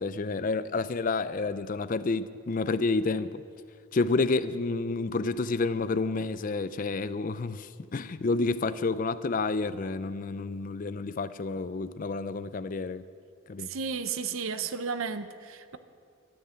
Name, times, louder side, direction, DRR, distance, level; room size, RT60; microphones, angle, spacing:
voice 1, 0.0-3.4 3.9-13.0 13.5-13.7, left 3 dB, 40° left, 0.4 m, -29 dB
voice 2, 13.7-15.8, right 5 dB, 75° right, 0.7 m, -33 dB
13.5 x 6.7 x 9.3 m
head